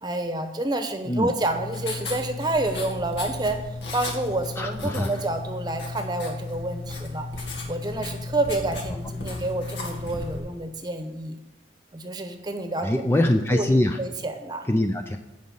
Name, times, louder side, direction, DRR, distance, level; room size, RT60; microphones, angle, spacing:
voice 1, 0.0-3.6 3.9-7.3 7.7-11.4 11.9-12.9 13.5-14.7, right 2 dB, 25° right, 7 dB, 1.0 m, -28 dB
Writing, 1.4-10.4, left 3 dB, 80° left, 2.0 m, -34 dB
voice 2, 4.6-5.1 12.8-14.0 14.7-15.2, left 1 dB, 15° left, 5 dB, 0.4 m, -23 dB
15.5 x 5.3 x 5.5 m, 0.96 s
head